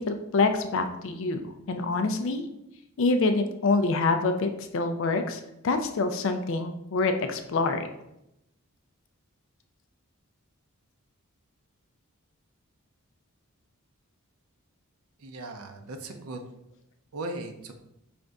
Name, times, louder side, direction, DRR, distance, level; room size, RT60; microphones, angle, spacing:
voice 1, 0.1-2.4 3.0-7.9, left 3 dB, 60° left, 7 dB, 0.4 m, -26 dB
voice 2, 15.2-16.4 17.1-17.7, right 2 dB, 75° right, 5 dB, 0.5 m, -38 dB
5.2 x 2.6 x 3.4 m, 0.83 s
head